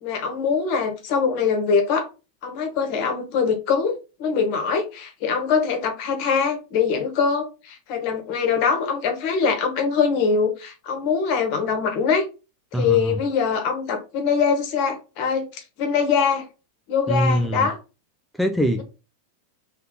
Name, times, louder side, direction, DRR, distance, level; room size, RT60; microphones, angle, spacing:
voice 1, 0.0-2.1 2.4-12.2 12.7-16.4 16.9-17.8, left 6 dB, 45° left, 1.1 m, -23 dB
voice 2, 12.7-13.2 17.1-17.7 18.4-18.8, equal, ahead, 0.4 m, -22 dB
3.3 x 2.7 x 3.8 m
figure-of-eight pair, 90°, 0 cm